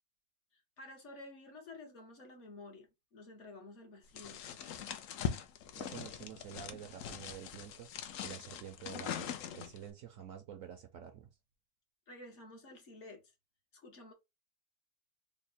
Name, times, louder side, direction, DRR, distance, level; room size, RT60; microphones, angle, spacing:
voice 1, 0.5-4.5 12.1-13.2 13.7-14.1, left 2 dB, 50° left, 1.1 m, -52 dB
sound 1, 4.2-9.9, left 9 dB, 70° left, 0.8 m, -42 dB
voice 2, 5.7-11.3, right 9 dB, 70° right, 0.8 m, -49 dB
3.6 x 2.1 x 4.0 m
omnidirectional pair, 1.7 m